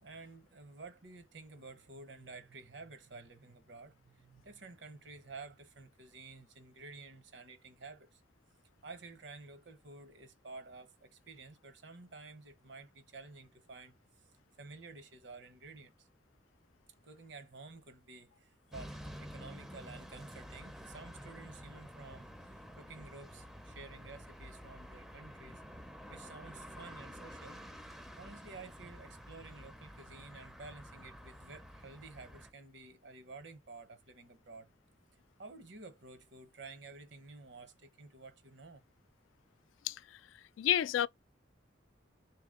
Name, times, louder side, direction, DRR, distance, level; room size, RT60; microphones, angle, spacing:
voice 1, 0.0-8.2 8.8-13.9 14.6-16.1 17.0-25.6 26.1-27.6 28.2-34.7 35.4-38.8, right 3 dB, 70° right, 0.8 m, -52 dB
sound 1, 18.7-32.5, equal, ahead, 0.4 m, -50 dB
voice 2, 39.8-40.2 40.6-41.1, left 11 dB, 90° left, 0.3 m, -30 dB
3.4 x 2.9 x 3.6 m
head